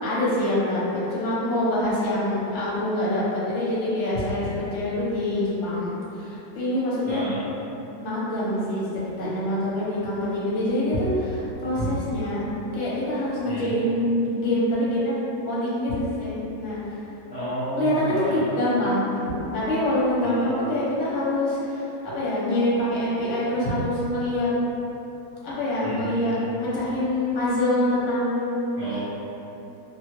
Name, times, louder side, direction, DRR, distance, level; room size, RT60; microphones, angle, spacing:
voice 1, 0.0-7.3 8.0-8.9 9.2-12.5 12.7-15.1 15.4-17.0 17.8-19.1 19.5-24.5 25.4-29.0, left 1 dB, 50° left, -8 dB, 1.0 m, -25 dB
voice 2, 7.1-7.4 13.5-13.8 17.3-18.4 20.2-20.5 25.8-26.4 28.8-29.0, equal, 20° left, -14 dB, 0.7 m, -31 dB
2.9 x 2.4 x 3.0 m, 3.0 s
omnidirectional pair, 1.8 m